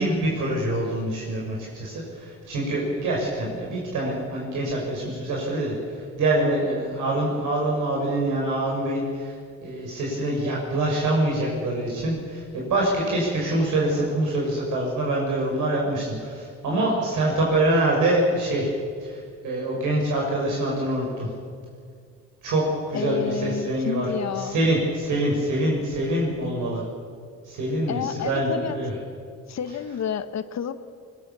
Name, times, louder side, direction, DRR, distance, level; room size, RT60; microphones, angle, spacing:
voice 1, 0.0-9.4 9.6-18.7 19.0-21.3 22.4-22.6 22.9-24.1 24.4-26.8 27.4-28.9, right 1 dB, 80° right, -3 dB, 6.1 m, -25 dB
voice 2, 22.9-24.6 27.9-28.8 29.5-30.7, left 8 dB, 60° left, 10 dB, 1.5 m, -30 dB
24.0 x 21.0 x 7.0 m, 2.2 s
cardioid pair, 90°, 30 cm